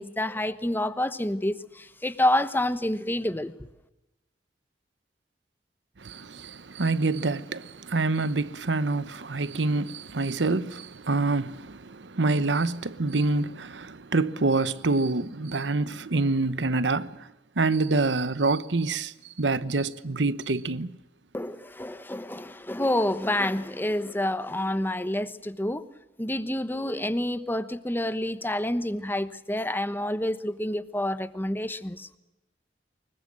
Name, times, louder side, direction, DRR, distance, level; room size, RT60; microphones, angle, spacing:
voice 1, 0.0-3.5 21.3-25.8 26.2-32.1, left 1 dB, 10° left, 1.1 m, -28 dB
voice 2, 6.0-17.2 17.6-19.1 19.4-20.9, right 3 dB, 80° right, 1.0 m, -26 dB
24.5 x 22.0 x 7.7 m
head